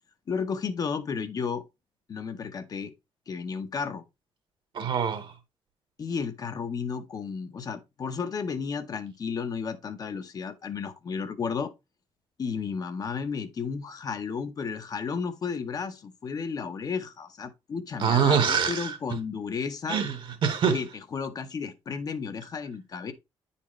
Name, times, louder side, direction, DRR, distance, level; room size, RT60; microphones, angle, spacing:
voice 1, 0.3-1.6 2.1-2.9 3.3-4.0 6.0-11.7 12.4-20.0 20.6-20.9 21.1-23.1, left 5 dB, 40° left, 0.7 m, -33 dB
voice 2, 4.7-5.3 18.0-19.0 19.9-20.8, right 7 dB, 55° right, 1.3 m, -24 dB
9.5 x 4.2 x 3.0 m
cardioid pair, 130°, 10 cm